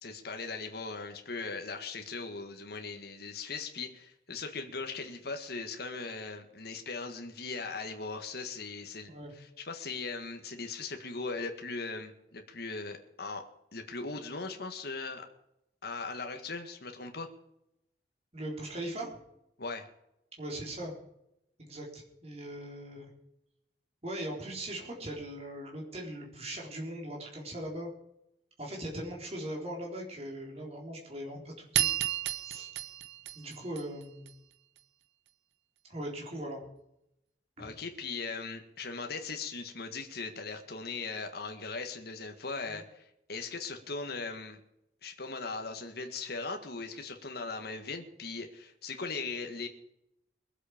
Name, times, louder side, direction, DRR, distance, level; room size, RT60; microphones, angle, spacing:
voice 1, 0.0-13.4 13.7-15.3 15.8-17.3 19.6-19.9 37.6-44.6 45.0-49.7, left 4 dB, 60° left, 5 dB, 1.7 m, -39 dB
voice 2, 18.3-19.1 20.4-20.9 21.6-23.1 24.0-27.9 28.6-31.9 32.5-32.7 33.3-34.3 35.9-36.6 37.6-37.7 42.7-42.8, right 1 dB, 35° right, -2 dB, 4.1 m, -40 dB
sound 1, 31.7-34.3, right 12 dB, 85° right, 0.9 m, -32 dB
22.0 x 8.0 x 5.1 m, 0.82 s
head